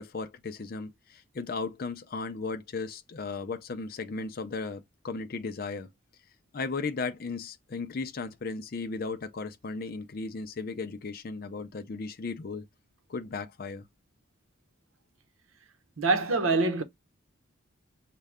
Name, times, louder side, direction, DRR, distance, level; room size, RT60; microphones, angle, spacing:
voice 1, 0.0-5.9 6.5-12.7 13.1-13.9, left 4 dB, 45° left, 0.5 m, -36 dB
voice 2, 16.0-16.8, right 3 dB, 80° right, 0.9 m, -25 dB
6.4 x 2.2 x 3.5 m
head